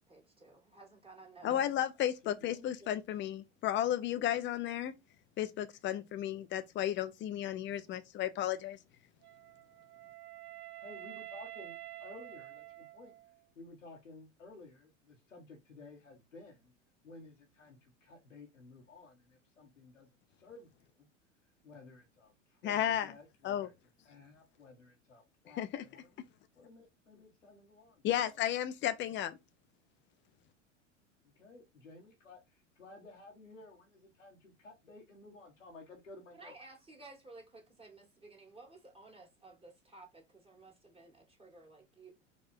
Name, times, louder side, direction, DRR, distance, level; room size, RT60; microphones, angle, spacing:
voice 1, 0.0-1.7 36.3-42.4, right 3 dB, 15° right, 2.0 m, -55 dB
voice 2, 1.4-4.9 5.4-8.8 22.6-23.2 23.4-23.7 25.6-25.8 28.0-29.4, left 11 dB, 30° left, 0.6 m, -33 dB
voice 3, 2.2-3.0 10.8-13.1 13.5-16.7 17.0-20.1 20.4-20.7 21.6-23.7 24.0-26.1 26.6-28.4 31.2-32.4 32.8-36.6, left 3 dB, 90° left, 1.2 m, -54 dB
Wind instrument woodwind instrument, 9.2-13.4, right 15 dB, 35° right, 0.6 m, -49 dB
4.6 x 2.4 x 4.4 m
figure-of-eight pair, 85°, 37 cm